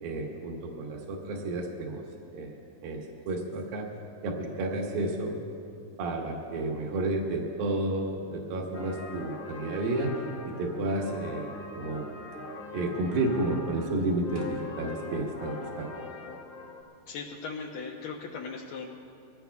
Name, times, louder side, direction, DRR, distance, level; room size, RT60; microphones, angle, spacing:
voice 1, 0.0-2.0 2.3-3.9 4.2-5.4 6.0-10.2 10.5-12.1 12.7-15.9, right 2 dB, 80° right, -1 dB, 3.2 m, -31 dB
sound 1, 8.7-16.8, left 3 dB, 55° left, 2.2 m, -41 dB
voice 2, 17.1-18.9, left 5 dB, 75° left, -2 dB, 2.4 m, -38 dB
23.5 x 17.5 x 2.3 m, 2.6 s
omnidirectional pair, 4.1 m